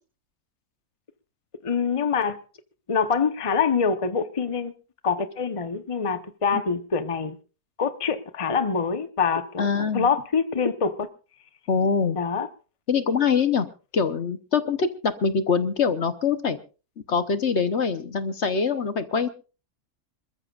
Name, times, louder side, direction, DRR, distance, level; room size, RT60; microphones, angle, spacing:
voice 1, 1.6-2.4 2.9-4.7 5.0-7.4 7.8-9.7 9.9-11.1 12.1-12.5, left 5 dB, 25° left, 0.9 m, -25 dB
voice 2, 9.6-10.1 11.7-12.2 12.9-13.7 13.9-16.6 17.1-19.3, left 5 dB, 50° left, 1.2 m, -24 dB
26.5 x 14.0 x 2.4 m
omnidirectional pair, 1.5 m